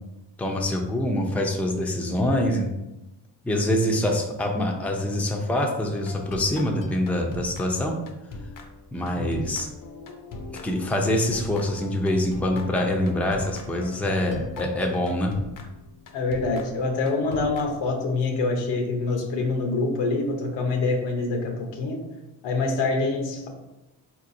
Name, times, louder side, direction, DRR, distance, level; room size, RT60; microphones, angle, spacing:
voice 1, 0.4-2.7 3.4-7.9 8.9-9.7 10.5-15.3, left 1 dB, 5° left, 1 dB, 0.5 m, -25 dB
sound 1, 5.9-18.3, left 3 dB, 50° left, 0.7 m, -41 dB
voice 2, 16.1-22.0 22.4-23.5, left 3 dB, 70° left, 2 dB, 0.9 m, -25 dB
3.9 x 2.9 x 2.6 m, 0.96 s
supercardioid pair, 65°, 44 cm